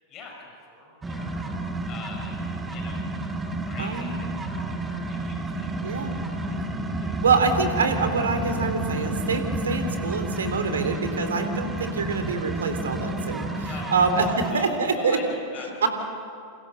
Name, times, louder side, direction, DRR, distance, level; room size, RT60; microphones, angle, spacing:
voice 1, 0.1-1.4 1.8-2.4 2.7-3.0 3.6-7.2 13.3-15.9, left 4 dB, 35° left, 1 dB, 6.3 m, -44 dB
sound 1, 1.0-14.5, right 1 dB, 15° right, 2.3 m, -30 dB
voice 2, 3.8-4.1 5.8-6.2 7.2-15.2 15.8-15.9, right 4 dB, 65° right, 7 dB, 3.4 m, -25 dB
28.5 x 28.5 x 6.7 m, 2.6 s
figure-of-eight pair, 90°, 0 cm